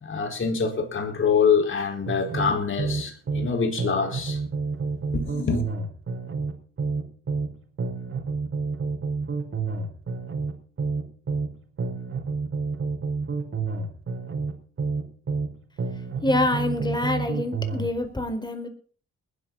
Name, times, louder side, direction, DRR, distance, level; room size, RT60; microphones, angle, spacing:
voice 1, 0.0-4.4 5.1-5.7, left 6 dB, 40° left, 4.6 m, -25 dB
sound 1, 2.1-3.5 3.8-7.5 7.8-11.5 11.8-15.5 15.8-17.9, right 4 dB, 40° right, 5.0 m, -29 dB
voice 2, 16.2-18.7, left 2 dB, 15° left, 4.7 m, -26 dB
20.5 x 11.5 x 4.1 m
cardioid pair, 90°, 30 cm